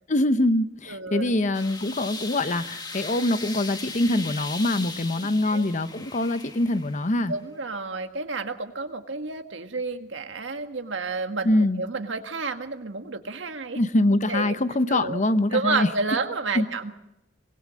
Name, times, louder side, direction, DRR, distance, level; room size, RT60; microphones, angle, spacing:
voice 1, 0.1-7.3 11.4-11.8 13.8-15.9 16.5-16.7, left 1 dB, 40° left, 12 dB, 0.9 m, -24 dB
voice 2, 0.9-1.3 5.4-5.6 7.3-11.5 11.8-13.8 14.3-14.5 14.9-15.2 15.5-16.9, right 4 dB, 85° right, 6 dB, 1.7 m, -30 dB
sound 1, 1.5-7.2, left 3 dB, 20° left, 1.6 m, -38 dB
24.0 x 20.5 x 6.3 m, 0.87 s
head